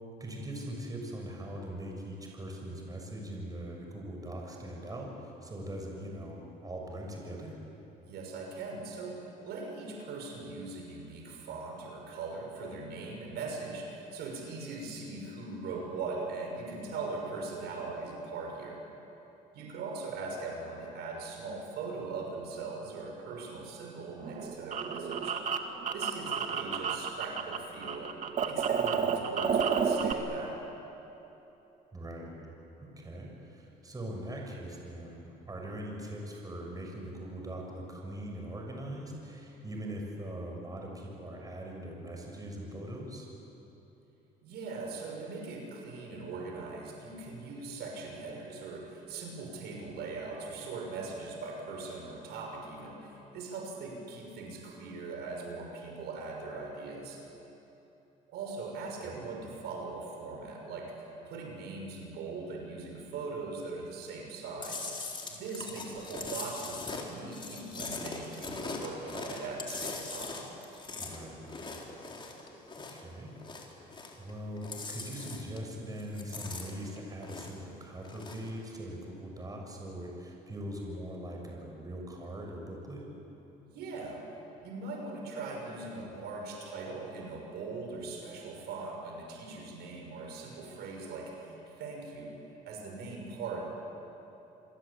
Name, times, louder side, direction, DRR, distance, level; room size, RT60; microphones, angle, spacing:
voice 1, 0.2-7.6 31.9-32.3 32.8-43.3 59.0-59.2 71.0-71.5 72.8-73.4 74.2-83.1, right 1 dB, 20° right, 0 dB, 6.8 m, -41 dB
voice 2, 8.0-18.8 19.5-25.4 25.9-28.2 28.4-30.6 44.4-57.2 58.3-60.9 61.2-64.9 65.3-70.4 83.7-84.3 84.6-93.6, right 3 dB, 75° right, 1 dB, 6.4 m, -40 dB
sound 1, 24.2-27.6 27.8-30.1, right 6 dB, 50° right, 2.1 m, -30 dB
Chewing mastication, 64.6-73.1 73.4-74.3 74.6-75.7 76.0-77.7 78.0-78.5, left 3 dB, 30° left, 4.1 m, -41 dB
28.5 x 22.5 x 8.7 m, 3.0 s
cardioid pair, 110°, 17 cm